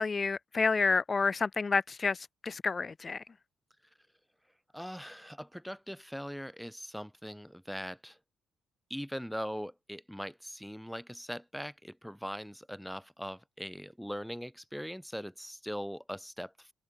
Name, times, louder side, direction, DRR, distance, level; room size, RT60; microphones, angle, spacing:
voice 1, 0.0-2.2 2.4-3.2, left 4 dB, 30° left, 0.5 m, -29 dB
voice 2, 4.7-8.2 8.9-16.7, equal, ahead, 1.7 m, -41 dB
cardioid pair, 90°, 0 cm